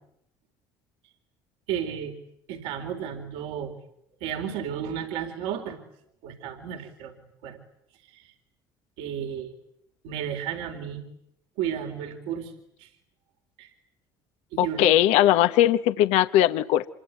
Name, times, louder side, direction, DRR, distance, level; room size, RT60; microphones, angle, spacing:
voice 1, 1.7-2.1 2.5-3.8 4.2-5.8 6.2-7.1 7.4-7.6 8.1-8.3 9.0-9.5 10.0-11.0 11.6-12.5 12.8-12.9 13.6-13.7 14.5-15.0, right 9 dB, 75° right, 4.1 m, -33 dB
voice 2, 14.6-16.9, left 13 dB, 70° left, 1.1 m, -20 dB
27.0 x 23.5 x 9.4 m
hypercardioid pair, 65°, 12 cm